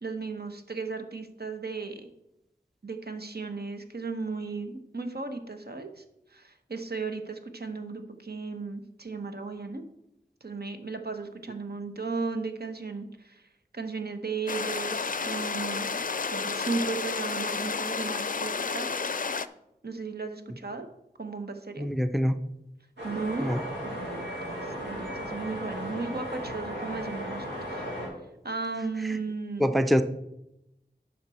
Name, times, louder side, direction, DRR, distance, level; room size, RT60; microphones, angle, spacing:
voice 1, 0.0-2.1 2.8-6.0 6.3-9.8 10.4-13.5 13.7-15.9 16.3-18.9 19.8-20.9 21.2-21.9 23.0-23.6 23.8-27.8 28.4-29.7, right 4 dB, 65° right, 6 dB, 1.1 m, -35 dB
sound 1, 14.5-19.5, left 5 dB, 50° left, 0.4 m, -31 dB
voice 2, 21.8-22.3 23.4-23.6 29.6-30.0, equal, ahead, 10 dB, 0.5 m, -24 dB
sound 2, 23.0-28.1, equal, 90° right, 3.9 m, -36 dB
10.5 x 6.0 x 4.3 m, 0.86 s
wide cardioid pair, 45°, 18 cm